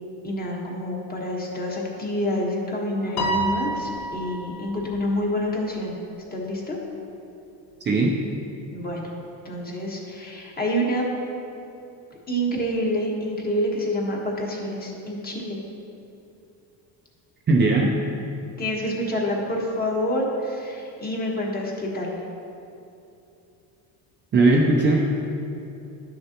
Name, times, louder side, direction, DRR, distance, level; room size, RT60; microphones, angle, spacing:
voice 1, 0.2-6.0 6.3-6.8 8.7-9.0 9.4-11.1 12.3-15.6 18.6-22.1, equal, 20° left, -2 dB, 1.4 m, -27 dB
Piano, 3.2-4.7, right 2 dB, 55° left, 1.1 m, -27 dB
voice 2, 17.5-17.9 24.3-25.1, right 2 dB, 25° right, -1 dB, 0.6 m, -18 dB
11.0 x 6.5 x 2.9 m, 2.8 s
cardioid pair, 135°, 41 cm